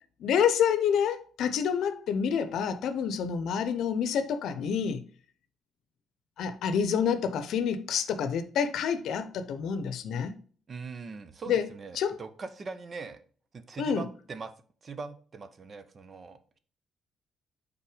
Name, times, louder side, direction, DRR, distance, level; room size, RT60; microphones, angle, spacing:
voice 1, 0.2-5.0 6.4-10.4 11.5-11.6 12.0-12.2 13.8-14.1, left 7 dB, 75° left, 0.7 m, -28 dB
voice 2, 10.7-13.2 13.5-14.5 14.8-16.6, right 4 dB, 40° right, 0.7 m, -41 dB
5.7 x 4.1 x 4.9 m
cardioid pair, 90°, 0 cm